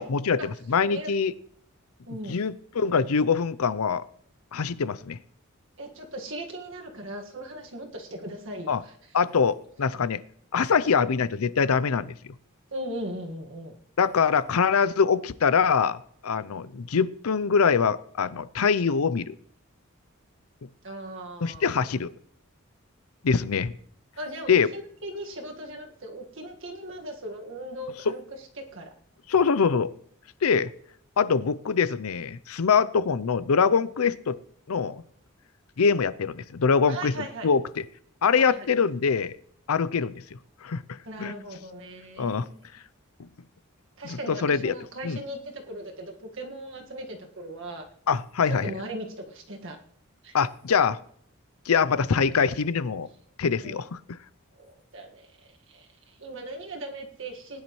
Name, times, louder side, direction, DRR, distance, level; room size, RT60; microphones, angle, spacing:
voice 1, 0.0-1.3 2.3-4.0 4.5-5.2 8.7-8.8 9.1-10.2 10.5-12.1 14.0-19.4 21.4-22.1 23.2-23.7 24.5-24.7 28.1-28.2 29.3-29.9 30.4-30.7 31.2-34.4 34.7-35.0 35.8-37.6 38.2-39.3 39.7-40.1 40.6-40.8 41.2-41.3 42.2-42.5 44.0-44.7 45.0-45.2 48.1-48.7 50.3-51.0 51.7-53.1 53.4-54.2, left 6 dB, 80° left, 16 dB, 0.6 m, -24 dB
voice 2, 2.1-2.4 5.8-8.9 12.7-13.8 20.8-21.7 24.2-28.9 36.9-37.5 38.4-38.7 41.0-42.6 44.0-47.9 48.5-49.8 50.2-50.4 53.6-53.8 54.6-57.6, right 1 dB, 60° right, 2 dB, 1.8 m, -38 dB
20.0 x 10.5 x 3.1 m, 0.63 s
head